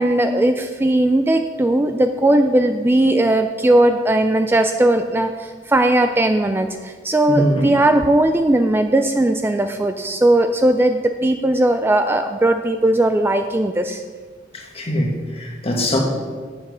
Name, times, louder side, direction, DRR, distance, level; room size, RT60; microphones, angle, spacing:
voice 1, 0.0-14.0, right 1 dB, 15° right, 7 dB, 0.3 m, -18 dB
voice 2, 7.3-7.7 14.5-16.0, equal, 35° left, 0 dB, 1.6 m, -22 dB
7.8 x 7.1 x 6.3 m, 1.5 s
head